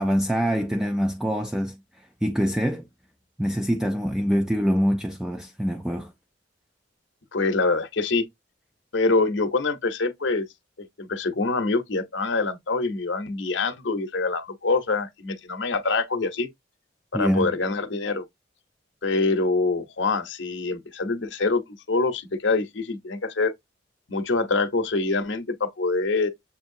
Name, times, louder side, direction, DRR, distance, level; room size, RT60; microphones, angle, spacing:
voice 1, 0.0-2.9 3.4-6.1 17.1-17.5, equal, 5° right, 0.3 m, -25 dB
voice 2, 7.3-8.3 8.9-10.5 11.0-16.5 17.1-18.2 19.0-21.6 21.9-23.5 24.1-26.3, left 3 dB, 70° left, 0.8 m, -25 dB
7.2 x 2.6 x 2.6 m
head